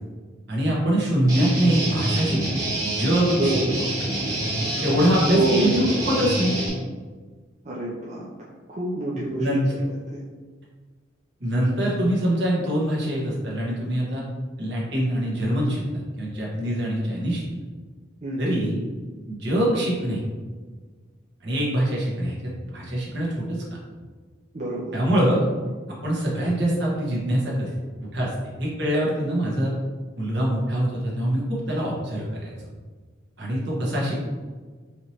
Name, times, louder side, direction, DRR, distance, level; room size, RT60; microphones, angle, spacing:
voice 1, 0.5-2.4 2.8-3.5 4.8-6.6 9.4-9.7 11.4-14.2 14.6-17.4 18.4-18.8 19.3-20.2 21.4-23.8 24.9-25.4 26.0-29.7 30.2-32.5 33.4-34.3, equal, 60° right, -5 dB, 1.3 m, -24 dB
Guitar, 1.3-6.7, right 1 dB, 20° right, 1.1 m, -27 dB
voice 2, 3.3-3.7 5.3-5.7 7.6-8.3 8.7-9.5 10.1-10.2 18.2-18.5 24.5-24.9 33.8-33.9, right 2 dB, 35° right, -6 dB, 0.5 m, -27 dB
4.8 x 3.1 x 2.8 m, 1.4 s
head